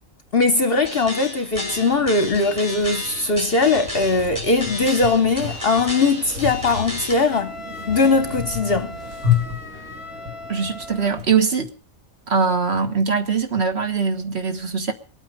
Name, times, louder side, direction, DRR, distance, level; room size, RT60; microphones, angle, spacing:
voice 1, 0.3-7.5 7.9-8.9, left 3 dB, 50° left, 1.0 m, -20 dB
sound 1, 0.8-7.1, left 1 dB, 15° right, 4.3 m, -32 dB
sound 2, 1.7-11.2, left 7 dB, 85° right, 3.4 m, -31 dB
Wind instrument woodwind instrument, 7.3-11.2, left 1 dB, 25° left, 1.2 m, -38 dB
voice 2, 10.5-11.7 12.3-14.9, right 5 dB, 50° right, 1.7 m, -22 dB
23.5 x 9.0 x 5.2 m
omnidirectional pair, 1.4 m